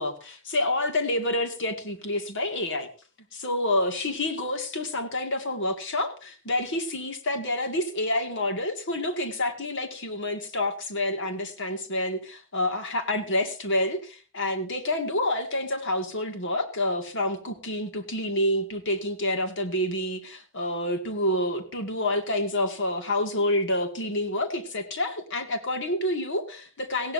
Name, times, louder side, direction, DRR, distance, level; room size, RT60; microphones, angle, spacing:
voice 1, 0.0-2.9 3.3-27.1, left 1 dB, 55° left, 7 dB, 2.2 m, -28 dB
19.5 x 16.5 x 2.7 m, 0.35 s
head